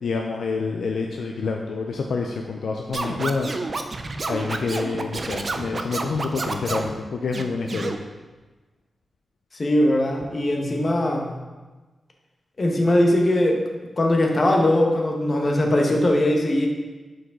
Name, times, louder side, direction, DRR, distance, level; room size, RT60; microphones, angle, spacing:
voice 1, 0.0-3.5 4.3-8.0, left 4 dB, 80° left, 2 dB, 0.4 m, -27 dB
Scratching (performance technique), 2.9-6.9 7.3-8.0, right 3 dB, 50° right, 0.5 m, -29 dB
voice 2, 9.6-11.3 12.6-13.6 14.0-16.7, left 1 dB, 50° left, 1 dB, 1.1 m, -20 dB
6.3 x 4.8 x 3.7 m, 1.2 s
cardioid pair, 50°, 0 cm